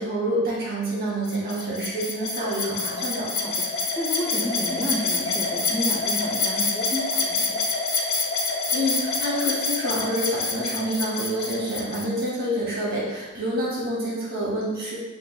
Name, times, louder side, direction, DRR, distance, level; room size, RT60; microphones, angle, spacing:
voice 1, 0.0-3.3 8.7-15.0, right 1 dB, 45° right, -5 dB, 1.0 m, -27 dB
sound 1, 1.2-12.3, left 3 dB, 70° left, 0.7 m, -27 dB
voice 2, 3.4-7.6, equal, 20° left, -3 dB, 0.4 m, -31 dB
3.1 x 2.4 x 3.8 m, 1.2 s
head